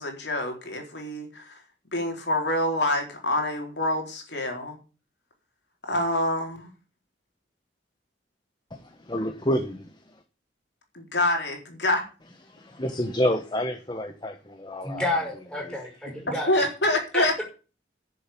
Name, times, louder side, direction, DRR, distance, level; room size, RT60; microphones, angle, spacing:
voice 1, 0.0-1.6 1.9-4.8 5.9-6.7 10.9-12.0 16.5-17.4, left 1 dB, 65° left, 3 dB, 4.2 m, -26 dB
voice 2, 8.7-10.2 12.5-15.2 15.6-15.8, equal, 25° left, 7 dB, 1.3 m, -29 dB
voice 3, 14.8-16.5 17.1-17.4, left 1 dB, 5° left, 0 dB, 5.7 m, -30 dB
11.0 x 7.0 x 9.2 m, 0.34 s
head